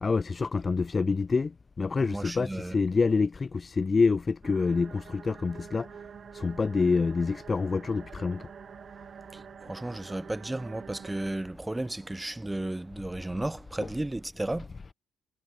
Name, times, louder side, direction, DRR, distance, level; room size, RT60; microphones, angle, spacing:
voice 1, 0.0-6.0 6.3-8.5 13.8-13.9 14.7-14.9, left 4 dB, 30° left, 0.4 m, -27 dB
voice 2, 2.1-2.8 9.3-14.7, right 1 dB, 10° right, 3.8 m, -34 dB
sound 1, 4.4-11.3, right 7 dB, 50° right, 6.4 m, -47 dB
cardioid pair, 90°, 0 cm